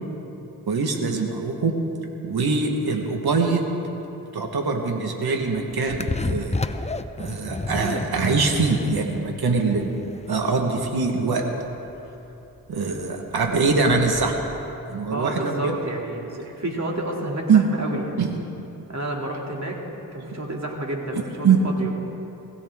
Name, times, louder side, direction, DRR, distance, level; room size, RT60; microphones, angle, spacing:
voice 1, 0.7-1.7 2.2-3.7 4.3-6.6 7.2-9.9 10.3-11.4 12.7-14.3 14.9-15.7 16.2-16.5 17.5-17.6 18.2-18.3 21.1-21.6, right 4 dB, 85° right, 2 dB, 1.5 m, -23 dB
sound 1, 5.5-14.7, left 3 dB, 20° left, 0.7 m, -32 dB
voice 2, 15.1-18.3 18.9-19.8 20.1-21.9, right 1 dB, 50° right, -1 dB, 2.7 m, -30 dB
21.0 x 16.0 x 3.6 m, 2.9 s
cardioid pair, 55°, 36 cm